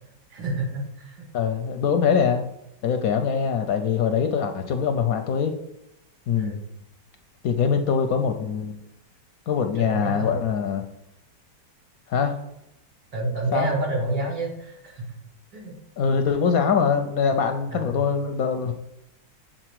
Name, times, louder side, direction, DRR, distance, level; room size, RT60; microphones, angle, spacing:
voice 1, 0.3-1.2 6.3-6.6 9.7-10.3 13.1-15.1 15.5-15.7 16.4-16.6 17.7-18.0, right 1 dB, 80° right, -3 dB, 3.0 m, -29 dB
voice 2, 1.3-2.4 2.8-5.5 6.3-6.5 7.4-8.8 9.5-10.8 12.1-12.3 13.5-13.7 16.0-18.7, left 6 dB, 70° left, 6 dB, 0.9 m, -23 dB
7.7 x 4.0 x 4.7 m, 0.82 s
omnidirectional pair, 1.9 m